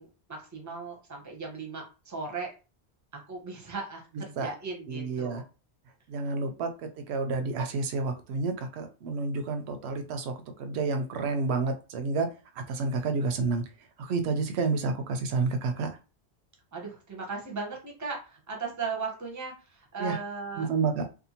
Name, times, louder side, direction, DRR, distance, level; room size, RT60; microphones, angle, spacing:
voice 1, 0.0-2.5 3.1-5.4 16.7-20.7, right 4 dB, 20° right, 0 dB, 0.6 m, -37 dB
voice 2, 4.9-5.4 6.1-6.7 7.1-12.3 12.6-13.6 14.0-16.0 20.0-20.2 20.6-21.0, right 4 dB, 80° right, 7 dB, 0.8 m, -29 dB
2.6 x 2.3 x 2.8 m, 0.32 s
omnidirectional pair, 1.1 m